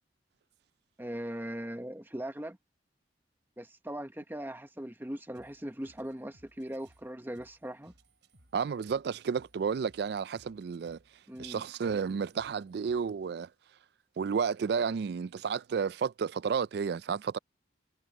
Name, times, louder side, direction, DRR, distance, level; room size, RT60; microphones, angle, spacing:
voice 1, 1.0-2.6 3.6-7.9 11.3-11.6, right 1 dB, 10° right, 1.2 m, -40 dB
sound 1, 5.3-13.3, right 1 dB, 80° right, 4.5 m, -65 dB
voice 2, 8.5-11.0 11.4-13.5 14.2-17.4, right 6 dB, 65° right, 0.3 m, -31 dB
head